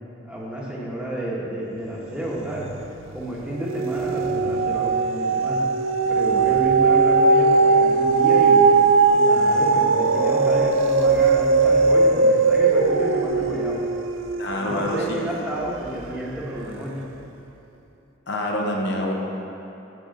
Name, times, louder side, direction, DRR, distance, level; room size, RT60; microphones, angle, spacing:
voice 1, 0.2-2.7 3.1-5.7 6.1-8.7 9.1-13.8 14.5-16.9, equal, 5° right, -6 dB, 1.2 m, -30 dB
sound 1, 2.5-3.0 3.4-15.9 16.4-16.5, right 4 dB, 75° right, 0.4 m, -19 dB
voice 2, 14.4-15.0 18.3-19.1, left 1 dB, 55° left, 0 dB, 0.8 m, -26 dB
7.9 x 4.8 x 7.1 m, 2.9 s
head